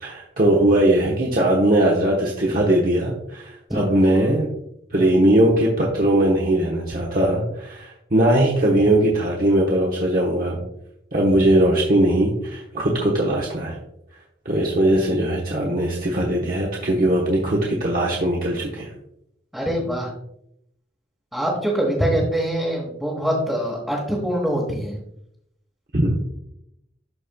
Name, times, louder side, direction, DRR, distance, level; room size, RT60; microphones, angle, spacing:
voice 1, 0.0-4.5 4.9-10.6 11.1-13.8 14.4-18.9 25.9-26.1, right 1 dB, 50° right, -3 dB, 1.1 m, -20 dB
voice 2, 19.5-20.1 21.3-25.0, right 1 dB, ahead, -4 dB, 1.2 m, -24 dB
12.5 x 4.3 x 2.2 m, 0.78 s
head